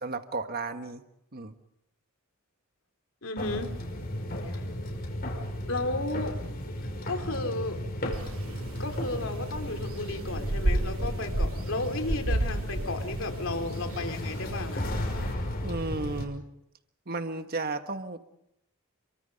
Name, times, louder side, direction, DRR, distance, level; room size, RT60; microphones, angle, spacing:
voice 1, 0.0-1.0 1.3-1.5 15.6-16.5 17.1-18.2, right 3 dB, 45° right, 8 dB, 1.5 m, -33 dB
voice 2, 3.2-3.7 4.5-4.6 5.7-6.4 7.1-7.8 8.8-14.8, left 2 dB, 70° left, 6 dB, 3.2 m, -33 dB
sound 1, 3.4-16.3, equal, 45° left, 5.6 m, -34 dB
sound 2, 8.1-15.3, right 1 dB, 80° right, 1.2 m, -33 dB
29.5 x 24.0 x 5.3 m, 0.81 s
head